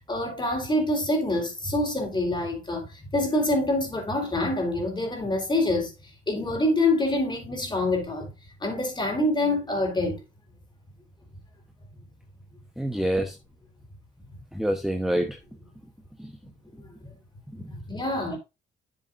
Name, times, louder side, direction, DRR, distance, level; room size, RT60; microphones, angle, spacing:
voice 1, 0.0-5.9 6.3-8.3 8.6-10.2 16.8-16.9 17.7-18.4, left 1 dB, 20° left, 4.1 m, -26 dB
voice 2, 12.8-13.4 14.5-15.4 16.2-16.3 17.5-17.7, right 1 dB, ahead, 1.1 m, -27 dB
11.0 x 7.2 x 2.6 m
cardioid pair, 90°, 20 cm